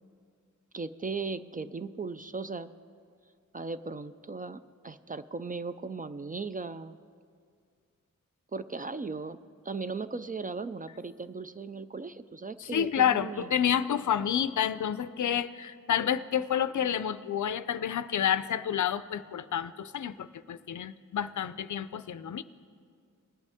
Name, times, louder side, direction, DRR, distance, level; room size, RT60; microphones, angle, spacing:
voice 1, 0.7-2.7 3.5-7.0 8.5-9.4 9.6-13.5, right 4 dB, 25° right, 12 dB, 0.3 m, -37 dB
voice 2, 12.6-22.4, left 9 dB, 65° left, 14 dB, 0.5 m, -29 dB
21.5 x 8.2 x 3.5 m, 2.2 s
cardioid pair, 60°, 32 cm